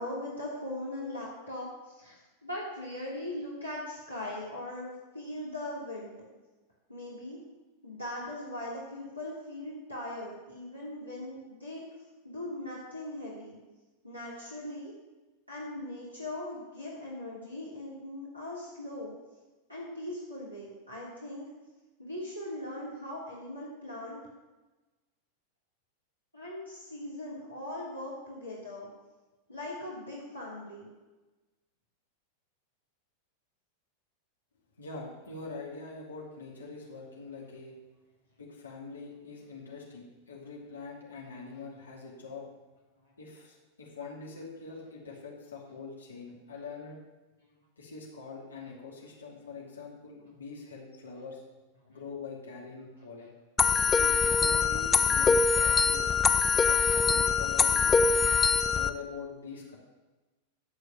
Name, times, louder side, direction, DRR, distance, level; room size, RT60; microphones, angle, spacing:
voice 1, 0.0-2.1 2.4-6.2 6.9-7.4 7.8-11.8 12.2-13.6 14.0-14.9 15.5-19.1 19.7-21.5 22.0-24.2 26.3-28.9 29.5-30.9 51.9-52.0, left 1 dB, 90° left, -7 dB, 2.8 m, -40 dB
voice 2, 34.8-37.7 38.4-42.4 43.2-47.0 47.8-51.4 51.9-53.3 53.8-56.0 56.5-58.2 58.7-59.8, left 4 dB, 75° left, -3 dB, 2.5 m, -44 dB
sound 1, 53.6-58.9, left 5 dB, 15° left, 0.6 m, -24 dB
14.5 x 4.9 x 7.6 m, 1.2 s
figure-of-eight pair, 90°, 0 cm